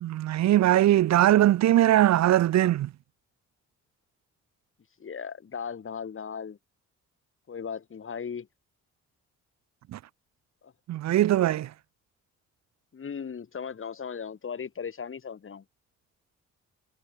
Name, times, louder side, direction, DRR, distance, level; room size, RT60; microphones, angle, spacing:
voice 1, 0.0-2.9 9.9-10.0 10.9-11.7, right 13 dB, 65° right, 0.7 m, -21 dB
voice 2, 5.0-6.6 7.5-8.5 10.6-10.7 12.9-15.6, left 6 dB, 45° left, 5.4 m, -37 dB
cardioid pair, 90°, 30 cm